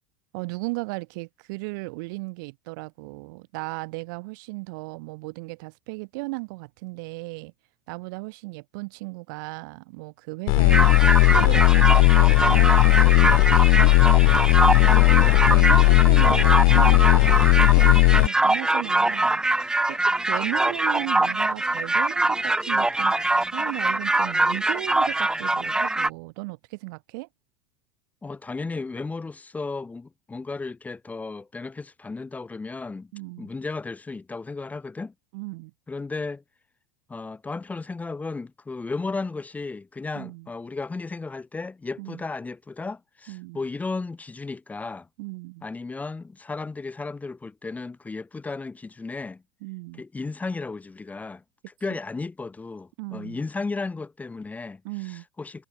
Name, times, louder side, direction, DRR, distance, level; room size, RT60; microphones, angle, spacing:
voice 1, 0.3-7.5 7.9-10.9 11.3-13.9 14.6-15.1 15.5-19.4 19.9-27.3 33.1-33.5 35.3-35.7 40.1-40.5 42.0-42.2 43.3-43.6 45.2-45.6 49.6-50.0 53.0-53.4 54.8-55.2, right 27 dB, 70° right, 2.4 m, -36 dB
sound 1, 10.5-18.3, left 40 dB or more, 60° left, 0.4 m, -16 dB
sound 2, 10.7-26.1, right 2 dB, 5° right, 0.7 m, -23 dB
voice 2, 14.9-15.5 28.2-33.1 33.4-35.1 35.9-36.4 37.1-45.1 45.6-49.4 50.0-51.4 51.8-55.6, left 3 dB, 15° left, 2.3 m, -34 dB
supercardioid pair, 115°, 11 cm